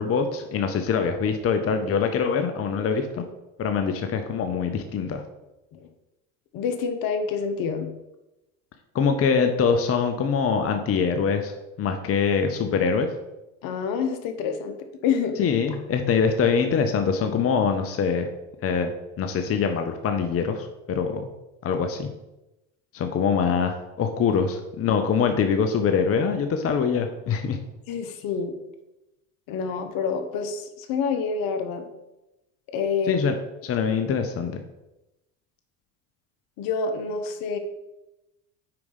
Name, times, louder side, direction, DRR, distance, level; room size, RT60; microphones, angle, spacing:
voice 1, 0.0-3.2 3.6-5.2 8.9-11.5 11.8-13.1 15.4-18.3 18.6-18.9 19.2-21.2 21.6-22.1 22.9-27.6 33.1-33.3 33.6-34.6, left 6 dB, 40° left, 6 dB, 0.8 m, -24 dB
voice 2, 6.5-7.9 13.6-15.4 27.9-28.6 29.5-31.9 32.7-33.3 36.6-37.6, left 5 dB, 65° left, 7 dB, 1.0 m, -27 dB
4.9 x 4.8 x 5.5 m, 0.96 s
supercardioid pair, 85°, 37 cm